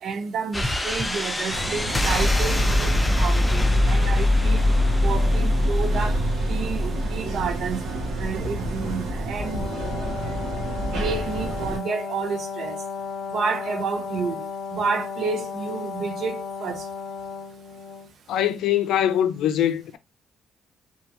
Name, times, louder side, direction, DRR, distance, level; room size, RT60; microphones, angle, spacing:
voice 1, 0.0-4.7 5.0-6.2 6.5-7.9 8.2-9.7 10.9-12.8 13.3-14.5 14.7-16.9, right 5 dB, 65° right, 0.5 m, -30 dB
sound 1, 0.5-8.2, left 1 dB, 10° left, 0.4 m, -23 dB
sound 2, 1.5-11.8, right 1 dB, 90° right, 0.8 m, -30 dB
Brass instrument, 9.4-18.1, left 5 dB, 45° left, 0.9 m, -34 dB
voice 2, 18.3-20.0, left 11 dB, 85° left, 0.3 m, -22 dB
2.2 x 2.1 x 2.8 m
cardioid pair, 90°, 0 cm